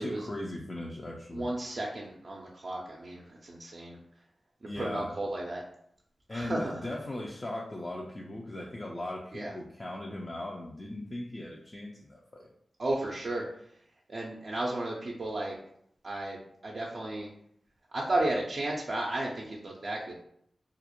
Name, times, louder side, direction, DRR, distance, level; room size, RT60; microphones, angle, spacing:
voice 1, 0.0-1.5 4.7-5.1 6.3-12.5, left 1 dB, 40° left, -2 dB, 0.4 m, -38 dB
voice 2, 1.3-4.0 4.6-5.6 6.3-6.8 9.3-9.5 12.8-13.4 14.1-15.6 16.0-17.3 17.9-20.1, right 2 dB, 60° right, -3 dB, 0.4 m, -33 dB
2.4 x 2.0 x 2.9 m, 0.69 s
cardioid pair, 45°, 0 cm